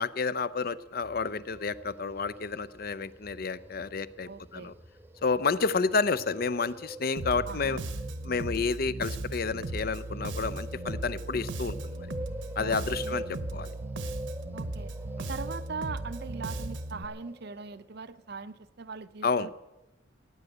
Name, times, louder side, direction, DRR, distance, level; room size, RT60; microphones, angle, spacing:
voice 1, 0.0-4.7 5.2-7.8 8.2-12.1 12.6-13.7 15.2-15.3 19.2-19.5, left 4 dB, 50° left, 16 dB, 0.6 m, -30 dB
sound 1, 0.9-17.8, right 1 dB, 10° right, 0.6 m, -46 dB
voice 2, 4.3-4.7 7.4-7.8 12.6-13.3 14.5-14.9 15.3-19.5, right 4 dB, 55° right, 14 dB, 0.6 m, -40 dB
Bass guitar, 7.2-17.0, right 2 dB, 70° right, 1.0 m, -37 dB
15.5 x 9.8 x 8.0 m, 0.98 s
head